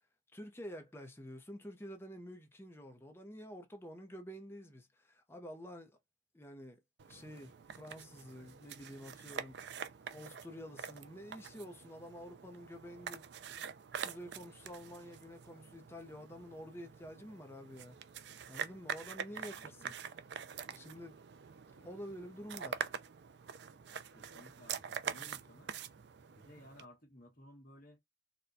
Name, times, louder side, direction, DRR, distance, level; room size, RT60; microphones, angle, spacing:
voice 1, 0.3-5.9 6.3-6.8 7.1-9.7 10.1-13.3 14.0-18.0 18.5-19.9 20.6-21.2 21.7-22.9, equal, 10° left, 0.6 m, -49 dB
sound 1, 7.0-26.9, right 7 dB, 60° right, 0.4 m, -45 dB
voice 2, 19.6-19.9 24.1-25.7 26.3-28.0, left 1 dB, 45° left, 1.4 m, -57 dB
4.2 x 2.2 x 2.6 m
head